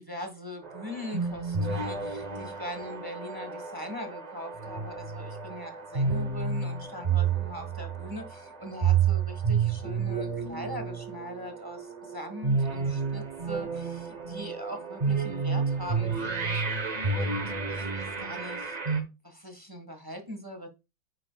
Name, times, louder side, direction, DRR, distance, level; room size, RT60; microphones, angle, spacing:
voice 1, 0.0-20.7, equal, 15° right, 1.2 m, -41 dB
sound 1, 0.6-19.0, right 5 dB, 40° right, 0.5 m, -30 dB
9.8 x 6.5 x 2.3 m
omnidirectional pair, 2.1 m